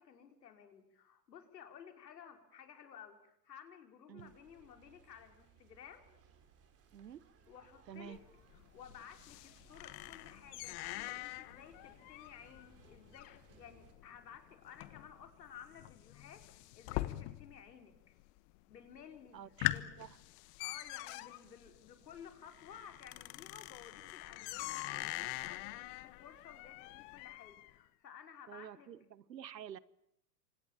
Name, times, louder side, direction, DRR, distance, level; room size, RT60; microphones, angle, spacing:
voice 1, 0.0-6.0 7.5-8.2 8.7-18.2 18.7-19.4 19.6-19.9 20.6-28.9, left 8 dB, 75° left, 5.1 m, -55 dB
sound 1, 4.2-13.9, right 6 dB, 30° right, 4.7 m, -65 dB
voice 2, 6.9-7.2 7.9-8.2 19.3-20.2 28.5-29.8, right 9 dB, 80° right, 1.3 m, -49 dB
sound 2, 8.1-17.7 18.0-18.6 19.0-19.1 19.4-27.7, left 19 dB, 40° left, 1.4 m, -43 dB
28.0 x 25.5 x 7.4 m
hypercardioid pair, 110°, 50 cm